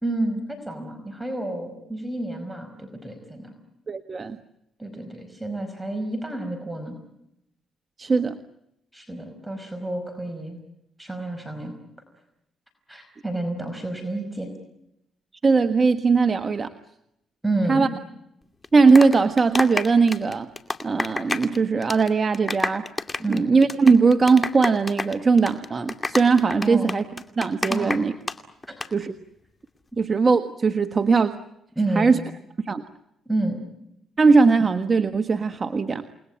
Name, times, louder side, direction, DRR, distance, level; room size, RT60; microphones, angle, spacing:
voice 1, 0.0-3.5 4.8-7.0 8.9-10.6 11.0-11.7 12.9-14.5 17.4-18.0 23.2-23.4 26.6-26.9 27.7-28.0 28.7-28.8 31.8-32.2 33.2-33.6, right 2 dB, 5° right, 6 dB, 5.0 m, -29 dB
voice 2, 3.9-4.4 8.0-8.4 15.4-16.7 17.7-17.9 18.7-20.5 20.8-22.9 23.3-27.0 27.4-28.1 28.9-29.1 30.0-31.4 31.9-32.2 32.6-32.8 34.2-36.0, right 4 dB, 35° right, 9 dB, 1.4 m, -19 dB
sound 1, 18.6-21.6 21.8-22.1 22.3-28.4 28.6-28.9, left 3 dB, 20° left, 2.5 m, -28 dB
29.5 x 20.0 x 8.8 m, 0.82 s
cardioid pair, 90°, 0 cm